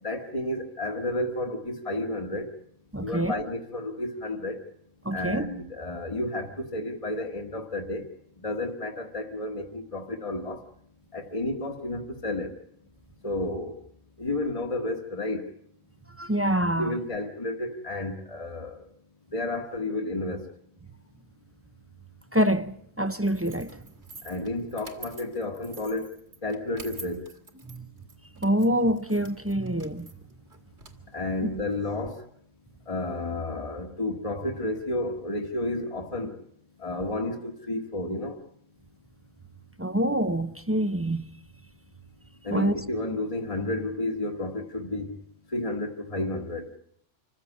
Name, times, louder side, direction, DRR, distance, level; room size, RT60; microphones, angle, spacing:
voice 1, 0.0-2.5 3.0-4.6 5.1-8.0 8.4-10.6 11.1-12.5 13.2-13.7 14.2-15.4 16.6-18.8 19.3-20.5 24.2-26.1 26.4-27.2 31.1-32.2 32.9-36.4 36.8-38.4 42.4-45.2 45.5-46.7, left 2 dB, 25° left, 1.5 m, -31 dB
voice 2, 2.9-3.4 5.0-5.5 16.2-17.0 22.3-23.8 27.7-27.8 28.4-30.1 39.8-41.3 42.5-42.7, right 1 dB, 15° right, 0.7 m, -26 dB
sound 1, 23.2-32.1, right 2 dB, 55° right, 2.6 m, -48 dB
26.5 x 15.5 x 8.5 m
omnidirectional pair, 1.3 m